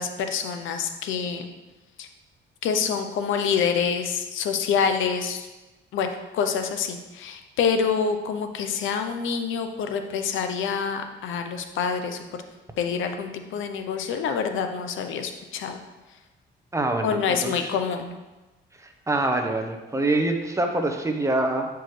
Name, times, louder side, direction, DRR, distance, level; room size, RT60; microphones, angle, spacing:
voice 1, 0.0-1.5 2.0-2.1 2.6-5.5 5.9-6.1 6.3-12.2 12.8-15.8 17.0-18.2, left 6 dB, 80° left, 6 dB, 0.7 m, -26 dB
voice 2, 16.7-17.7 18.8-21.7, right 2 dB, 15° right, 4 dB, 0.9 m, -25 dB
8.8 x 4.6 x 3.2 m, 1.1 s
cardioid pair, 90°, 20 cm